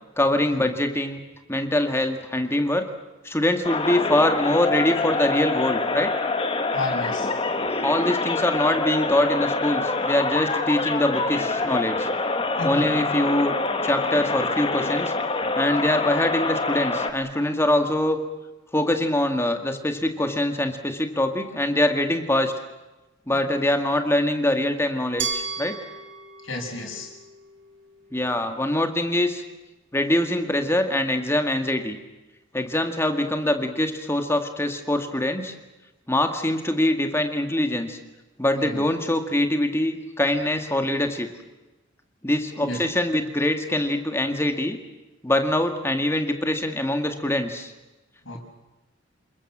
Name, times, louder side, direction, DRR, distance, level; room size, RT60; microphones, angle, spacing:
voice 1, 0.2-1.2 1.5-2.9 3.2-6.1 7.8-12.1 12.6-13.5 13.8-15.1 15.6-18.2 18.7-22.5 23.3-25.8 28.1-29.4 29.9-32.0 32.5-35.5 36.1-38.0 38.4-41.3 42.2-44.8 45.2-47.7, left 1 dB, 15° left, 6 dB, 2.0 m, -23 dB
sound 1, 3.6-17.1, left 3 dB, 30° left, 1.8 m, -26 dB
voice 2, 6.7-7.3 12.6-12.9 26.4-27.1 38.5-38.8 42.6-42.8 48.2-48.4, left 2 dB, 75° left, 1 dB, 6.6 m, -31 dB
Glass, 25.2-28.1, right 5 dB, 60° right, 3.0 m, -34 dB
28.5 x 21.5 x 7.5 m, 1.1 s
head